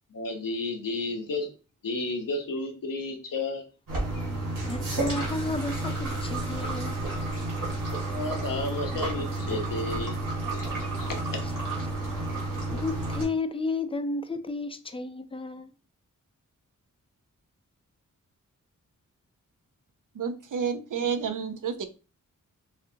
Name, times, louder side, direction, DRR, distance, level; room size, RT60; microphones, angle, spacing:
voice 1, 0.1-1.5 1.8-3.6 4.1-4.3 8.1-10.1 10.5-11.4, left 2 dB, 85° left, 1.0 m, -32 dB
sound 1, 3.9-13.2, right 2 dB, 90° right, 2.0 m, -31 dB
voice 2, 4.6-7.0 11.4-11.5 12.7-15.7, left 3 dB, 15° left, 0.5 m, -32 dB
voice 3, 20.1-21.9, right 6 dB, 70° right, 0.7 m, -30 dB
6.3 x 2.6 x 2.8 m
wide cardioid pair, 100°, 32 cm